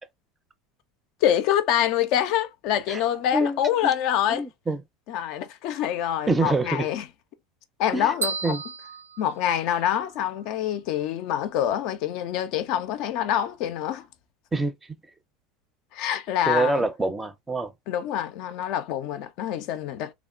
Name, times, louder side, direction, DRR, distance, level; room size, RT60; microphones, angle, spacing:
voice 1, 1.2-4.4 5.1-7.0 7.8-8.5 9.2-14.0 15.9-16.9 17.9-20.1, left 10 dB, 60° left, 0.3 m, -26 dB
voice 2, 3.3-3.9 4.3-4.8 6.3-6.9 7.9-8.1 8.4-8.6 14.5-14.7 16.5-17.7, right 2 dB, 15° right, 0.4 m, -25 dB
sound 1, 8.2-10.1, right 4 dB, 85° right, 0.4 m, -34 dB
2.9 x 2.0 x 2.3 m
hypercardioid pair, 80°, 0 cm